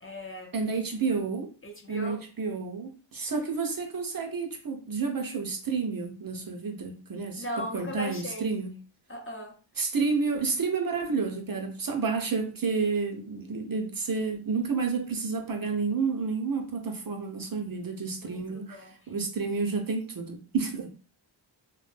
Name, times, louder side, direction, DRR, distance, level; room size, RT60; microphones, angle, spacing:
voice 1, 0.0-0.5 1.6-2.2 7.4-8.5 9.1-9.6 18.2-18.9, left 1 dB, 25° left, 1 dB, 0.6 m, -38 dB
voice 2, 0.5-1.5 1.9-8.7 9.8-21.0, right 4 dB, 45° right, 4 dB, 0.5 m, -30 dB
2.2 x 2.1 x 3.2 m, 0.38 s
cardioid pair, 45°, 50 cm